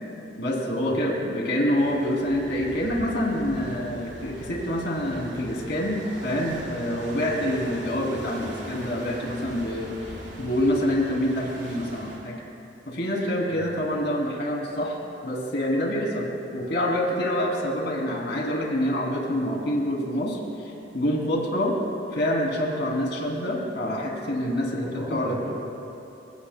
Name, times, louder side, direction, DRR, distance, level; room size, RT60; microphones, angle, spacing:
voice 1, 0.4-10.1 10.4-12.4 12.9-15.0 15.2-16.3 16.5-21.8 22.1-25.4, equal, 65° left, -1 dB, 2.9 m, -26 dB
sound 1, 1.8-12.2, equal, 85° right, 4.0 m, -40 dB
voice 2, 24.7-25.6, right 1 dB, 30° right, -5 dB, 3.1 m, -36 dB
30.0 x 16.0 x 2.2 m, 2.9 s
head